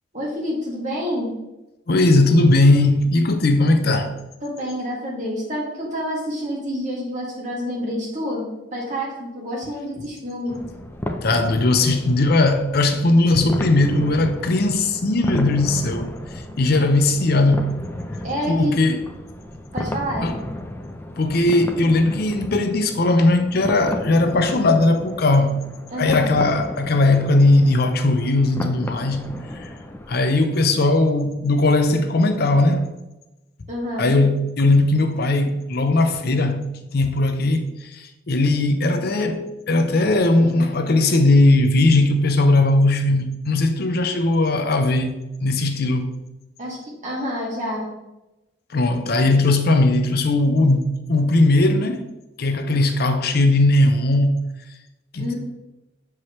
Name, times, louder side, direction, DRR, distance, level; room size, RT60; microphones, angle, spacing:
voice 1, 0.1-1.3 4.4-10.6 18.2-18.8 19.7-20.3 25.9-26.4 33.7-34.1 46.6-47.9 55.2-55.3, equal, 40° right, 2.0 m, -28 dB
voice 2, 1.9-4.1 11.2-16.1 16.6-17.8 18.5-19.0 20.2-20.4 21.2-25.6 26.0-29.3 29.6-29.7 30.1-32.9 34.0-36.6 36.9-45.1 45.4-46.1 48.7-52.1 52.4-54.4 55.1-55.3, left 2 dB, 55° left, 0.6 m, -18 dB
sound 1, 10.5-30.1, left 1 dB, 10° left, 0.5 m, -33 dB
7.2 x 4.7 x 3.1 m
head